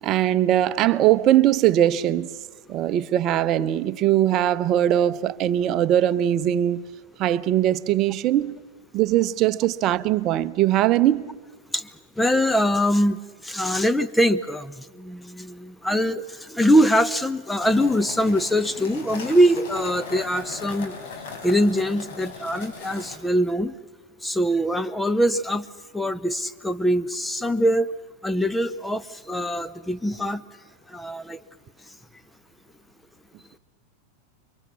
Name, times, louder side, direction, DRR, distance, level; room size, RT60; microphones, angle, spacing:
voice 1, 0.0-2.3 2.7-6.9 7.2-8.6 8.9-11.4, right 12 dB, 35° right, 0.8 m, -21 dB
voice 2, 12.2-20.9 21.4-23.7 24.2-25.6 25.9-27.9 28.2-30.4 30.9-31.4, equal, 5° left, 0.9 m, -23 dB
sound 1, 17.6-23.2, left 4 dB, 50° left, 4.6 m, -38 dB
29.5 x 24.0 x 7.2 m
figure-of-eight pair, 90°, 0 cm